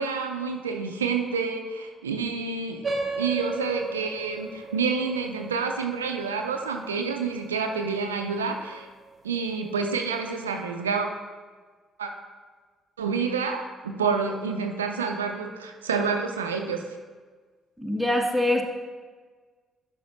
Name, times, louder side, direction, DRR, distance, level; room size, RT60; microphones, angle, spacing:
voice 1, 0.0-2.8 3.2-8.9 9.2-11.1 12.0-12.1 13.0-16.8, right 5 dB, 85° right, 4 dB, 0.5 m, -28 dB
sound 1, 2.8-7.8, right 3 dB, 35° right, 1.0 m, -35 dB
voice 2, 17.8-18.6, left 1 dB, ahead, 1 dB, 1.3 m, -24 dB
11.0 x 5.6 x 3.1 m, 1.4 s
figure-of-eight pair, 45°, 0 cm